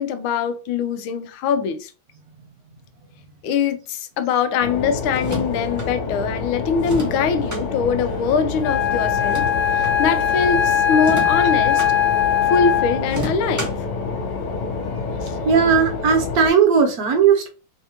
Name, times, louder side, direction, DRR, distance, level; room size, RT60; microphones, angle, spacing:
voice 1, 0.0-1.9 3.4-9.5 9.7-11.8 12.5-13.7 15.2-15.3, left 6 dB, 85° left, 1.4 m, -22 dB
sound 1, 4.6-16.5, left 4 dB, 65° left, 1.5 m, -28 dB
sound 2, 5.1-5.9 6.8-7.7 9.1-10.0 11.0-11.9 13.1-13.9, right 1 dB, 20° right, 0.5 m, -32 dB
Wind instrument woodwind instrument, 8.6-13.2, left 9 dB, 40° left, 1.3 m, -20 dB
voice 2, 15.4-17.5, right 6 dB, 65° right, 1.0 m, -17 dB
3.6 x 3.4 x 2.8 m
omnidirectional pair, 2.2 m